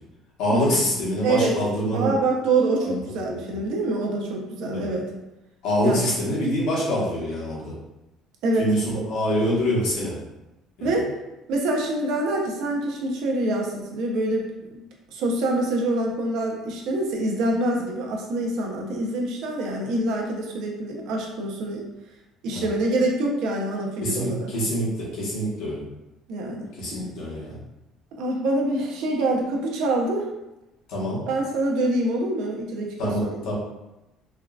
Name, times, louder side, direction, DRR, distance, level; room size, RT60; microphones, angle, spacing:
voice 1, 0.4-2.1 2.9-3.6 4.7-4.9 5.6-7.7 8.6-10.2 10.8-10.9 22.5-22.6 24.0-25.8 26.8-27.6 30.9-31.2 33.0-33.5, equal, 70° left, -6 dB, 1.2 m, -25 dB
voice 2, 1.2-1.6 1.9-5.1 5.8-6.0 8.4-9.0 10.8-11.1 11.5-14.8 15.1-21.8 22.4-24.5 26.3-26.7 28.2-30.2 31.3-33.4, right 2 dB, 65° right, 0 dB, 0.6 m, -25 dB
3.5 x 2.3 x 2.3 m, 0.96 s
cardioid pair, 160°, 0 cm